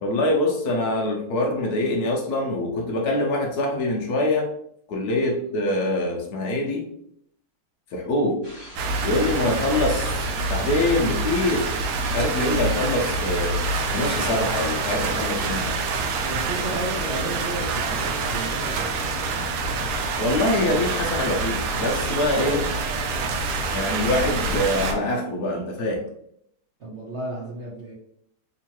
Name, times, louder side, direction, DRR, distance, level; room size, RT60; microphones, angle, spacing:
voice 1, 0.0-4.5 4.9-6.9 7.9-8.4 9.0-11.7 12.1-13.6 13.9-15.8 20.2-22.6 23.7-26.0, left 1 dB, 85° left, 0 dB, 0.8 m, -24 dB
sound 1, 8.4-16.3, left 1 dB, 35° left, 1.3 m, -42 dB
sound 2, 8.8-24.9, right 3 dB, 85° right, 1.5 m, -26 dB
voice 2, 16.2-19.1 22.4-23.0 26.8-27.9, right 1 dB, 70° right, -6 dB, 0.6 m, -33 dB
3.6 x 2.9 x 2.9 m, 0.70 s
omnidirectional pair, 2.4 m